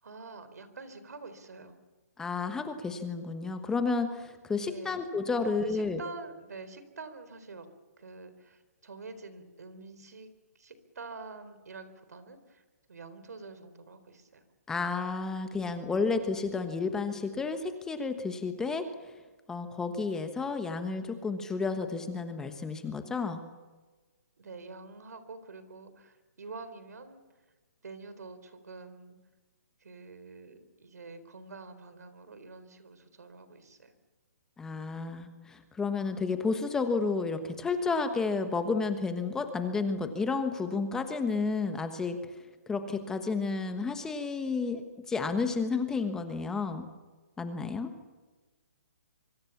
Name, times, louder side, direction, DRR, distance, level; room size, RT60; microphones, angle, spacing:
voice 1, 0.0-1.8 4.6-5.0 5.4-7.7 8.0-10.3 10.5-14.4 24.4-27.2 27.8-29.2 29.8-33.9, right 3 dB, 80° right, 12 dB, 4.2 m, -47 dB
voice 2, 2.2-6.0 14.7-18.9 19.5-23.4 34.6-42.2 42.7-46.9 47.4-47.9, left 4 dB, 5° left, 8 dB, 1.3 m, -31 dB
25.5 x 24.5 x 7.3 m, 1.2 s
hypercardioid pair, 165°, 9 cm